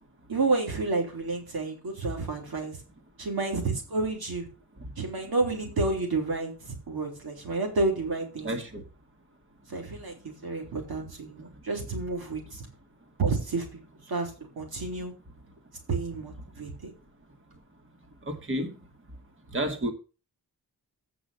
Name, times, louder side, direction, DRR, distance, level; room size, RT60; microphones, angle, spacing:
voice 1, 0.3-2.8 3.2-4.5 5.0-8.5 9.7-12.7 13.2-13.8 14.1-15.1 15.9-16.9, right 3 dB, 75° right, 3.4 m, -30 dB
voice 2, 8.4-8.8 18.3-18.7 19.5-19.9, right 1 dB, 35° right, 1.8 m, -30 dB
8.5 x 6.0 x 6.6 m
wide cardioid pair, 110°, 37 cm